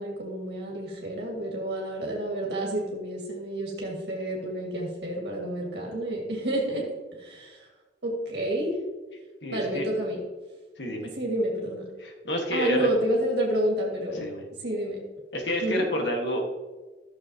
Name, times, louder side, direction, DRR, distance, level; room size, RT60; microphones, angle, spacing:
voice 1, 0.0-6.9 7.1-7.7 8.0-8.8 9.5-10.2 11.1-11.8 12.5-14.3 14.6-15.0 15.6-15.8, right 1 dB, 70° right, -2 dB, 1.9 m, -29 dB
voice 2, 9.4-9.9 10.8-11.1 12.0-12.9 14.1-14.4 15.3-16.4, equal, 75° left, 2 dB, 1.6 m, -29 dB
13.0 x 6.6 x 2.9 m, 1.2 s
head